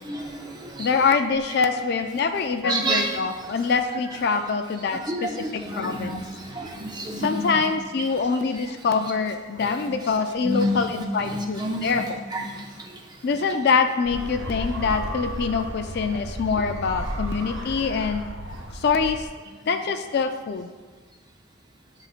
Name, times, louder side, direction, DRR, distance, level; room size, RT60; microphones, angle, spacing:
voice 1, 0.0-0.9 2.6-3.2 5.0-7.6 9.9-10.0 10.4-10.9 11.2-12.0 12.3-12.9, equal, 20° right, 0 dB, 0.6 m, -29 dB
voice 2, 0.8-6.2 7.2-12.2 13.2-18.3 18.7-19.3 19.7-20.7, left 5 dB, 50° left, 7 dB, 0.3 m, -25 dB
sound 1, 14.0-19.3, right 1 dB, 70° right, 1.1 m, -33 dB
10.5 x 3.9 x 2.4 m, 1.4 s
head